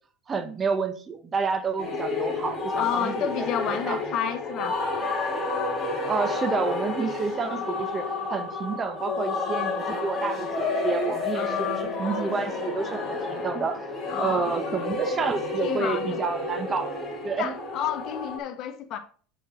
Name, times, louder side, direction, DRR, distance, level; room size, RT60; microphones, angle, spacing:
voice 1, 0.3-4.0 6.0-13.9 14.2-16.9 17.2-17.6, right 5 dB, 25° right, 1.0 m, -29 dB
sound 1, 1.8-18.4, left 3 dB, 15° left, 4.0 m, -30 dB
voice 2, 2.8-4.8 11.3-11.9 14.1-14.6 15.6-16.2 17.4-19.0, left 9 dB, 50° left, 1.5 m, -30 dB
7.8 x 6.6 x 4.3 m
supercardioid pair, 105°, 0 cm